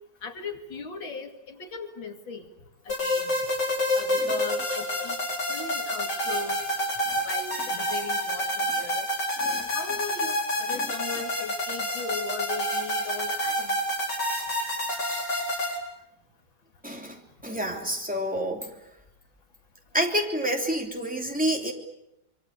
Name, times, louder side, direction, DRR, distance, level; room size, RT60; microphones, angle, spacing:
voice 1, 0.2-2.5 2.8-3.4 3.9-5.2 5.5-6.6 7.1-9.1 9.7-13.8, left 5 dB, 85° left, 4 dB, 3.2 m, -38 dB
sound 1, 2.9-15.8, left 1 dB, 65° left, 5.4 m, -28 dB
voice 2, 16.8-18.7 19.9-21.7, equal, 5° right, 1 dB, 3.1 m, -29 dB
26.0 x 23.5 x 8.3 m, 0.83 s
omnidirectional pair, 2.1 m